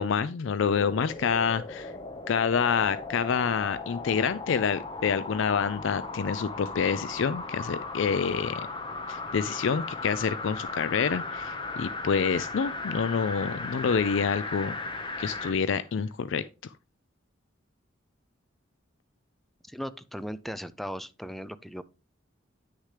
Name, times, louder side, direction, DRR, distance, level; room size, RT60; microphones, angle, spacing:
voice 1, 0.0-1.9 2.3-8.6 9.1-14.7 15.2-16.4, left 6 dB, 65° left, 0.4 m, -27 dB
sound 1, 0.6-15.6 16.0-16.1, left 3 dB, 25° left, 1.2 m, -37 dB
voice 2, 19.6-21.8, equal, ahead, 0.4 m, -37 dB
9.7 x 6.4 x 3.3 m
head